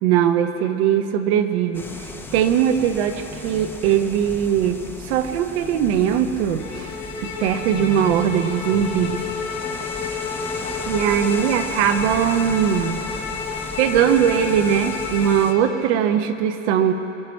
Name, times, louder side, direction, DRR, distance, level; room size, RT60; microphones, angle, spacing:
voice 1, 0.0-1.9 2.3-6.9 7.2-9.2 10.9-13.0 13.8-16.9, right 9 dB, 50° right, 7 dB, 1.0 m, -20 dB
sound 1, 1.7-15.5, left 2 dB, 5° left, 0.7 m, -36 dB
Bowed string instrument, 6.6-15.7, left 5 dB, 70° left, 2.9 m, -31 dB
21.5 x 12.0 x 4.6 m, 2.8 s
supercardioid pair, 135°, 40 cm